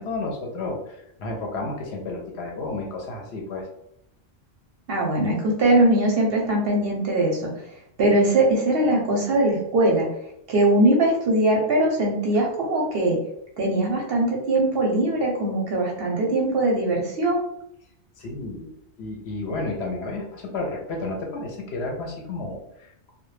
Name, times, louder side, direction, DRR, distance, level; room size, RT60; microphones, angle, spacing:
voice 1, 0.0-3.7 18.2-18.7 19.0-23.1, left 2 dB, 65° left, 0 dB, 0.7 m, -32 dB
voice 2, 4.9-7.5 8.0-10.1 10.5-13.2 13.6-17.5, right 1 dB, 60° right, -1 dB, 0.7 m, -21 dB
2.2 x 2.1 x 3.1 m, 0.75 s
omnidirectional pair, 1.3 m